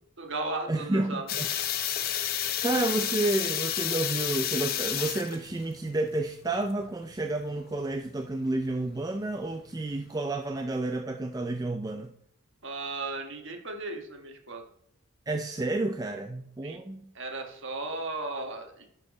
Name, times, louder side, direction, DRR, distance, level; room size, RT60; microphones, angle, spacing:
voice 1, 0.2-1.3 12.6-14.6 16.6-16.8 17.1-18.9, right 2 dB, 55° right, 3 dB, 1.4 m, -35 dB
voice 2, 0.7-1.5 2.3-12.1 15.3-17.1, right 2 dB, 15° right, 4 dB, 0.3 m, -30 dB
sound 1, 1.3-10.1, left 10 dB, 40° left, 0.5 m, -32 dB
11.0 x 4.6 x 4.2 m, 0.70 s
head